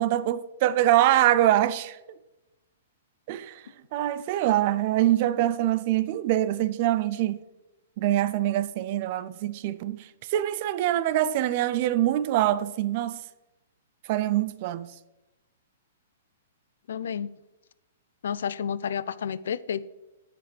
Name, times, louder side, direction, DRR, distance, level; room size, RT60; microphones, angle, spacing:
voice 1, 0.0-2.0 3.3-3.6 3.9-7.4 8.0-13.2 14.1-14.9, right 13 dB, 40° right, 0.3 m, -24 dB
voice 2, 16.9-17.3 18.2-19.8, left 8 dB, 75° left, 0.3 m, -30 dB
9.7 x 4.9 x 3.2 m
hypercardioid pair, 160°, 0 cm